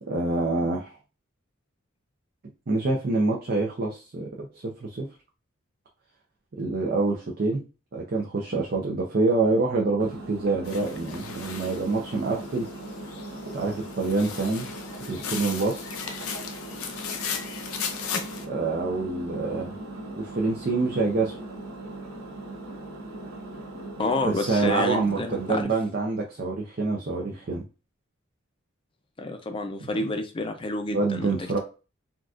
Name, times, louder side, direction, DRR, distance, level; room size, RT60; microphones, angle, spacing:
voice 1, 0.0-0.9 2.7-5.1 6.6-7.6 7.9-12.7 13.5-14.7 15.0-16.0 18.5-19.8 20.1-21.4 24.2-27.6 29.8-29.9 30.9-31.6, right 3 dB, 45° right, -1 dB, 0.5 m, -26 dB
Engine, 10.0-25.6, right 2 dB, 85° right, 0.8 m, -40 dB
sound 1, 10.6-18.5, left 6 dB, 90° left, 0.6 m, -36 dB
voice 2, 24.0-25.7 29.2-31.3, left 2 dB, 25° left, 6 dB, 0.4 m, -29 dB
3.8 x 2.3 x 2.4 m, 0.33 s
head